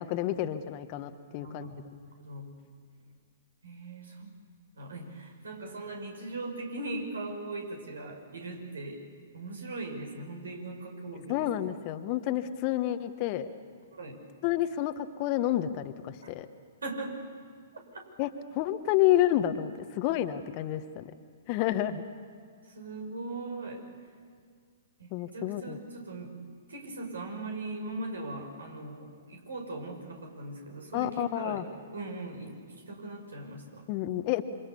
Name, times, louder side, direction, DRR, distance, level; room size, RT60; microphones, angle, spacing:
voice 1, 0.0-1.7 11.3-13.5 14.4-16.5 18.2-21.1 21.5-22.0 25.1-25.8 30.9-31.7 33.9-34.4, left 13 dB, 40° left, 9 dB, 1.4 m, -29 dB
voice 2, 1.3-2.5 3.6-4.3 4.7-9.0 9.3-11.6 13.9-14.2 16.2-16.3 16.8-17.2 17.7-18.1 22.6-23.8 25.0-26.4 26.7-31.6 31.9-33.9, right 2 dB, 75° right, 3 dB, 6.1 m, -40 dB
28.0 x 25.5 x 7.1 m, 2.1 s
figure-of-eight pair, 115°, 0 cm